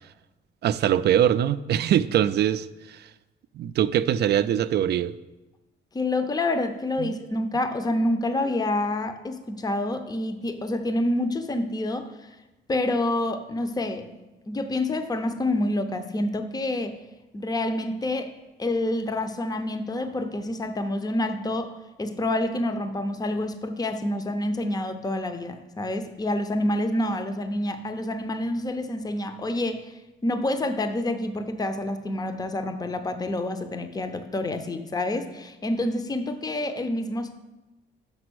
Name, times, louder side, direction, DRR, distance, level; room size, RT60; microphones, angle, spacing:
voice 1, 0.6-3.1 3.5-5.2 7.0-7.1, right 10 dB, 55° right, 15 dB, 0.4 m, -23 dB
voice 2, 5.9-12.3 12.7-14.1 14.5-17.0 17.3-21.7 22.0-37.3, left 1 dB, 20° left, 9 dB, 0.6 m, -28 dB
5.9 x 5.4 x 6.1 m, 1.1 s
cardioid pair, 90°, 20 cm